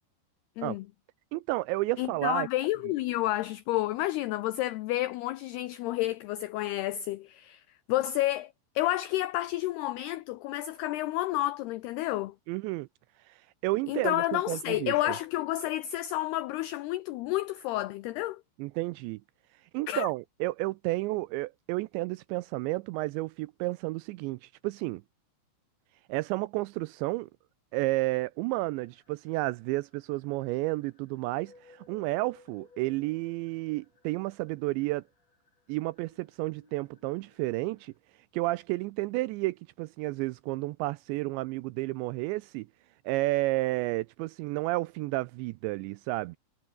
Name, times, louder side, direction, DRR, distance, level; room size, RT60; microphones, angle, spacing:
voice 1, 1.3-2.5 12.5-12.9 13.6-15.2 18.6-19.2 19.7-25.0 26.1-27.3 27.7-35.0 35.7-37.9 38.3-42.7 43.1-46.4, right 20 dB, 85° right, 2.6 m, -31 dB
voice 2, 2.0-7.6 7.9-12.3 13.9-18.4 19.9-20.1, left 15 dB, 85° left, 2.3 m, -30 dB
sound 1, 28.5-38.0, left 3 dB, 35° left, 7.7 m, -61 dB
omnidirectional pair, 5.6 m